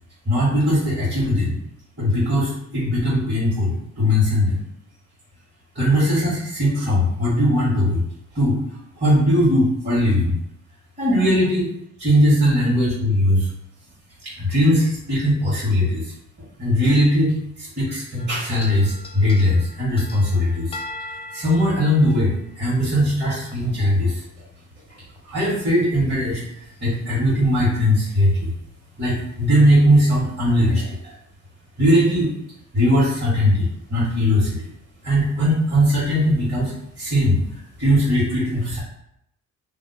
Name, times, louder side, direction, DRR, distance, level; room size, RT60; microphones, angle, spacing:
voice 1, 0.2-1.6 2.0-4.6 5.7-8.0 8.3-10.4 11.0-11.7 12.0-13.5 14.2-16.1 16.6-20.8 21.3-24.2 25.2-28.5 29.0-31.1 31.8-32.3 32.7-34.7 35.0-38.8, equal, 30° right, -11 dB, 1.5 m, -19 dB
sound 1, 18.2-23.0 23.5-23.6 25.2-25.3 25.9-26.0 26.7-27.0, left 2 dB, 20° left, 0.5 m, -39 dB
2.7 x 2.1 x 4.0 m, 0.78 s
cardioid pair, 90°, 30 cm